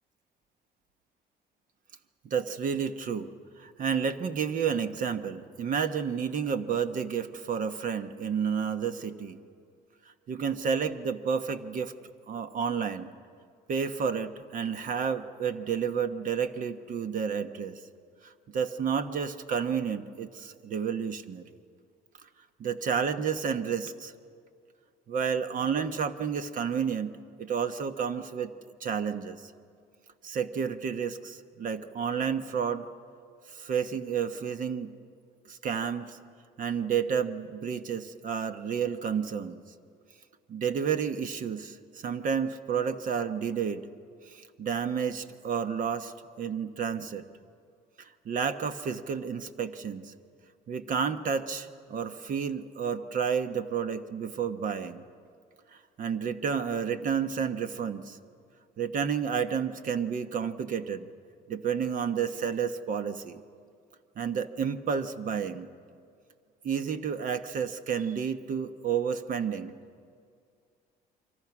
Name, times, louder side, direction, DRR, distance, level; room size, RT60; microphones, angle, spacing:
voice 1, 2.3-3.3 3.6-9.4 10.3-13.1 13.7-17.8 18.2-21.4 22.6-24.1 25.1-27.1 27.4-28.5 28.8-29.5 30.2-32.9 33.5-34.9 35.4-36.2 36.6-39.6 40.5-43.8 44.2-47.3 48.0-50.1 50.7-55.0 55.7-58.2 58.8-61.1 61.5-63.4 64.2-65.7 66.6-69.7, right 7 dB, 50° right, 10 dB, 1.2 m, -31 dB
28.5 x 25.0 x 6.1 m, 2.2 s
cardioid pair, 110°, 17 cm